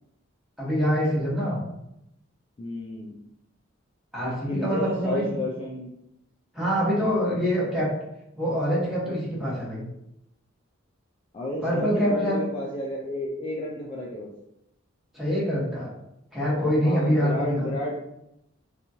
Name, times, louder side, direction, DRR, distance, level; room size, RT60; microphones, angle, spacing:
voice 1, 0.6-1.6 4.1-5.3 6.5-7.9 8.4-9.8 11.6-12.4 15.1-15.9 16.3-17.7, equal, ahead, -8 dB, 1.0 m, -25 dB
voice 2, 2.6-3.2 4.5-5.9 11.3-14.3 16.6-18.0, left 1 dB, 25° left, -3 dB, 0.3 m, -31 dB
2.9 x 2.3 x 2.6 m, 0.84 s
head